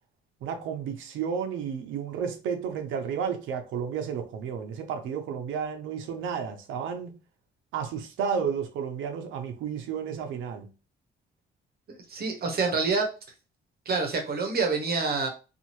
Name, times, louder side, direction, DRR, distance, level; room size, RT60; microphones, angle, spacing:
voice 1, 0.4-7.1 7.7-10.7, right 7 dB, 85° right, 0.6 m, -32 dB
voice 2, 11.9-13.1 13.9-15.3, right 4 dB, 50° right, 0.9 m, -27 dB
2.7 x 2.4 x 2.9 m
cardioid pair, 90°, 20 cm